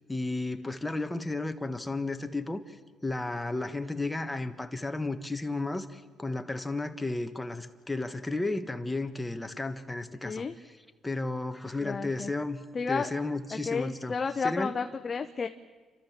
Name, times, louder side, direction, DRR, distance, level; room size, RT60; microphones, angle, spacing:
voice 1, 0.1-2.8 3.0-10.4 11.0-12.6 12.9-14.1 14.4-14.7, left 2 dB, 10° left, 8 dB, 1.5 m, -33 dB
voice 2, 11.8-12.3 12.7-13.1 13.5-15.5, left 5 dB, 35° left, 7 dB, 0.9 m, -32 dB
30.0 x 13.0 x 7.4 m, 1.4 s
cardioid pair, 90°, 0 cm